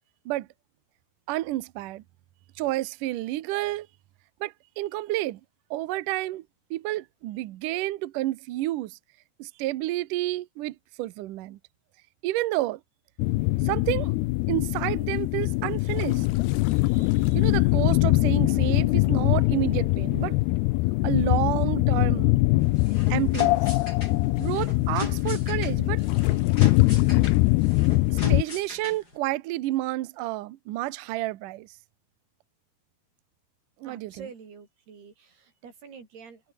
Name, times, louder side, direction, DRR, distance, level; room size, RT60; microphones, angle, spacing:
voice 1, 1.3-2.0 2.6-3.9 4.4-5.4 5.7-6.4 6.7-9.0 9.4-11.6 12.2-12.8 13.6-14.1 14.5-16.3 16.9-20.4 21.0-22.3 23.1-23.6 24.4-26.0 28.1-31.7 33.8-34.3, right 16 dB, 90° right, 1.8 m, -30 dB
sound 1, 13.2-28.4, left 21 dB, 85° left, 2.4 m, -23 dB
sound 2, 22.6-29.2, left 2 dB, 20° left, 7.4 m, -39 dB
voice 2, 33.8-36.5, right 6 dB, 60° right, 7.1 m, -47 dB
omnidirectional pair, 5.2 m